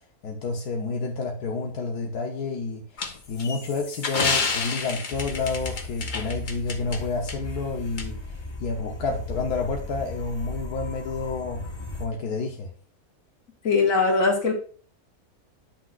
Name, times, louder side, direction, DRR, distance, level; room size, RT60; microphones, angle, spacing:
voice 1, 0.2-2.9 3.3-8.2 8.6-11.7 12.0-12.7, left 3 dB, 85° left, 1.5 m, -29 dB
sound 1, 3.0-7.0 7.3-7.4 8.0-8.1, left 4 dB, 40° left, 0.8 m, -29 dB
sound 2, 5.1-12.0, left 2 dB, 20° left, 1.1 m, -36 dB
voice 2, 13.6-14.5, left 4 dB, 60° left, 2.1 m, -21 dB
10.0 x 6.1 x 2.5 m
omnidirectional pair, 1.6 m